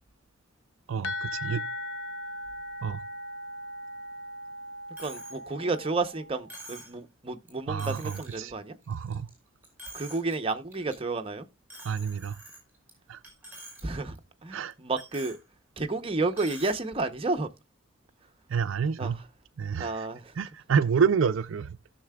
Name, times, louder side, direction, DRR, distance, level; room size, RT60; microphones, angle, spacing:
voice 1, 0.9-1.6 2.8-3.0 7.7-8.5 8.9-9.3 11.8-12.4 13.1-13.2 14.5-14.7 18.5-19.2 19.6-20.1 20.4-21.8, right 6 dB, 70° right, 0.4 m, -28 dB
sound 1, 1.0-6.6, left 1 dB, 65° left, 0.8 m, -38 dB
Coin (dropping), 5.0-5.4 5.7-5.8 6.5-7.0 7.5-7.6 7.8-8.4 8.8-9.3 9.6-10.3 10.7-10.9 11.7-12.9 13.2-13.8 14.1-14.2 15.0-15.4 16.3-16.8, right 1 dB, 10° right, 4.8 m, -46 dB
voice 2, 5.0-8.8 9.9-11.5 13.8-14.2 14.4-15.4 15.8-17.5 19.0-19.1 19.8-20.3, right 3 dB, 25° right, 0.8 m, -31 dB
17.0 x 6.6 x 2.3 m
head